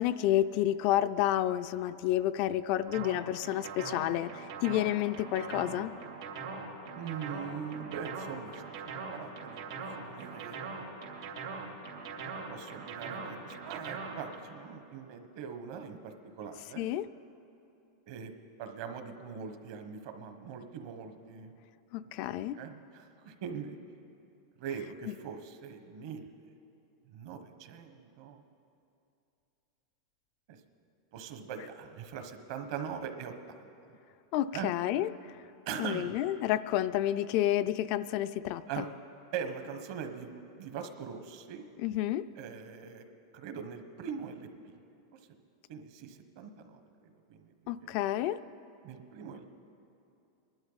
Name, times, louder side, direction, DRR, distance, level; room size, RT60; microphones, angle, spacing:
voice 1, 0.0-5.9 16.8-17.1 21.9-22.6 34.3-35.1 35.8-38.9 41.8-42.3 47.7-48.4, left 13 dB, 45° left, 12 dB, 0.3 m, -30 dB
sound 1, 2.9-14.3, right 5 dB, 80° right, 2.7 m, -41 dB
voice 2, 6.9-10.8 12.5-16.9 18.1-18.3 18.6-21.5 22.5-23.8 24.6-26.3 27.1-28.4 30.5-30.6 31.1-33.3 34.5-34.7 35.7-36.2 38.7-38.9 39.3-41.6 42.3-43.0 43.3-44.7 45.7-46.8 47.3-47.4 47.8-47.9 48.8-49.5, right 7 dB, 55° right, 7 dB, 1.2 m, -41 dB
21.5 x 11.5 x 4.0 m, 2.7 s
supercardioid pair, 155°, 2 cm